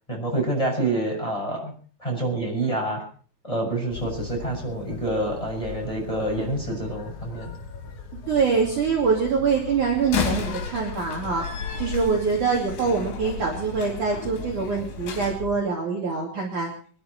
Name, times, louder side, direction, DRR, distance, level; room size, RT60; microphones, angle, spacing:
voice 1, 0.1-1.7 2.0-3.0 3.4-7.5, right 2 dB, 5° left, -1 dB, 6.2 m, -27 dB
sound 1, 3.9-15.6, left 4 dB, 55° left, 2.6 m, -39 dB
voice 2, 8.3-11.4 11.8-16.7, right 5 dB, 45° right, -2 dB, 3.7 m, -24 dB
Slam, 10.0-15.4, left 6 dB, 80° left, 5.8 m, -33 dB
25.5 x 12.0 x 4.4 m, 0.43 s
omnidirectional pair, 5.6 m